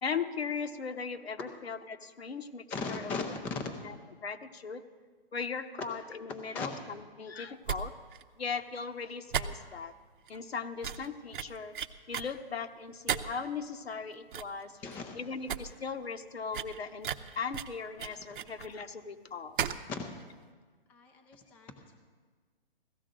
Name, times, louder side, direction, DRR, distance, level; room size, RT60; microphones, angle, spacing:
voice 1, 0.0-3.0 3.8-3.9 4.2-4.9 5.3-7.9 8.4-9.9 10.3-11.7 12.1-14.7 15.1-17.1 17.4-19.6, left 5 dB, 85° left, 8 dB, 1.1 m, -38 dB
voice 2, 2.7-3.6 5.8-5.9 6.3-6.7 14.8-15.2 18.3-18.4 19.9-20.0 20.9-22.0, left 4 dB, 5° left, 5 dB, 0.3 m, -38 dB
sound 1, 7.6-7.8 8.1-8.2 8.5-8.6 9.3-9.9 10.3-10.4 10.8-11.1 11.3-12.3 13.1-13.5 13.9-14.0 14.3-14.6 14.9-15.0 15.3-15.6 15.9-16.0 16.5-18.7 19.6-19.9 20.1-20.2, right 8 dB, 55° right, 0.7 m, -35 dB
16.5 x 14.0 x 3.8 m, 1.5 s
hypercardioid pair, 140°, 30 cm